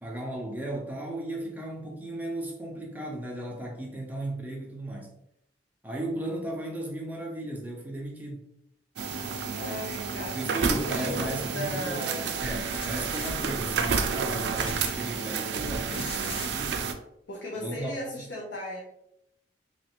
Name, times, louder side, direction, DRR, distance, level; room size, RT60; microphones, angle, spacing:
voice 1, 0.0-5.1 5.8-8.5 10.3-12.0 12.4-16.8 17.6-18.2, right 1 dB, 10° right, -1 dB, 0.6 m, -35 dB
sound 1, 9.0-16.9, right 5 dB, 65° right, 0.4 m, -30 dB
voice 2, 9.5-10.4 10.7-12.3 17.3-18.8, left 1 dB, 85° left, -3 dB, 0.7 m, -36 dB
sound 2, 12.7-13.3 14.5-14.9 15.9-16.5, left 6 dB, 30° left, 0.3 m, -41 dB
3.1 x 2.5 x 2.9 m, 0.77 s
head